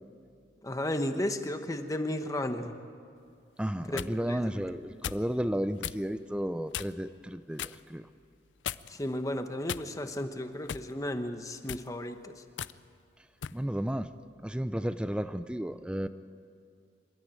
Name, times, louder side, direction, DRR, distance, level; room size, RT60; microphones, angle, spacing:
voice 1, 0.6-2.7 3.9-4.0 4.3-4.5 8.9-12.4, left 1 dB, 20° left, 8 dB, 1.1 m, -34 dB
sound 1, 3.6-4.1 5.0-5.3 5.8-6.0 6.7-7.1 7.6-7.8 8.6-9.1 9.7-10.2 10.7-10.9 11.6-11.9 12.6-12.8 13.4-13.6, left 9 dB, 90° left, 0.5 m, -37 dB
voice 2, 3.6-8.1 13.5-14.1 14.4-16.1, equal, 5° right, 12 dB, 0.5 m, -33 dB
26.5 x 13.0 x 9.0 m, 2.3 s
head